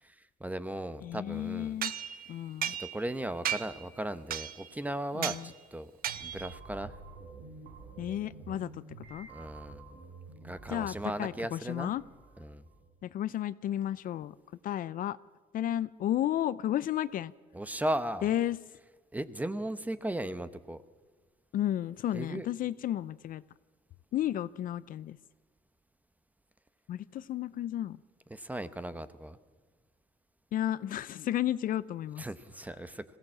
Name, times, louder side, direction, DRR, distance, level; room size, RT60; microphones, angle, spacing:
voice 1, 0.0-1.7 2.7-5.9 6.2-7.0 9.3-10.0 10.4-11.9 12.4-12.6 17.5-18.3 19.1-20.8 22.1-22.5 28.3-29.4 32.2-33.0, right 1 dB, 10° right, 13 dB, 0.9 m, -37 dB
voice 2, 1.0-1.9 2.3-2.8 5.2-5.5 8.0-8.8 9.1-9.3 10.7-12.0 13.0-14.3 14.6-15.2 15.5-17.3 18.2-18.6 21.5-23.4 24.1-25.2 26.9-28.0 30.5-32.2, left 12 dB, 55° left, 17 dB, 0.5 m, -32 dB
sound 1, 1.8-3.1 3.4-3.9 4.3-4.7 5.2-5.4 6.0-6.5, right 10 dB, 60° right, 0.9 m, -35 dB
sound 2, 6.1-13.0, right 3 dB, 75° right, 4.5 m, -50 dB
22.0 x 16.5 x 7.5 m, 1.4 s
cardioid pair, 110°, 17 cm